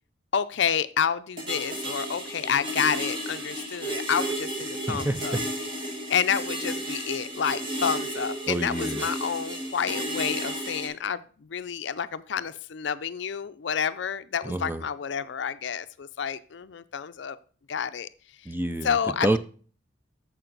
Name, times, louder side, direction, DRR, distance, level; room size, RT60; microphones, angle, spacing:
voice 1, 0.3-5.4 6.1-17.4 17.7-18.1 18.8-19.4, left 7 dB, 60° left, 13 dB, 0.4 m, -29 dB
sound 1, 1.4-10.9, right 1 dB, 25° right, 1.5 m, -33 dB
voice 2, 4.9-5.4 8.5-9.0 14.4-14.8 18.5-18.9 19.2-19.4, right 1 dB, 10° right, 11 dB, 0.3 m, -27 dB
8.8 x 6.9 x 3.9 m, 0.42 s
head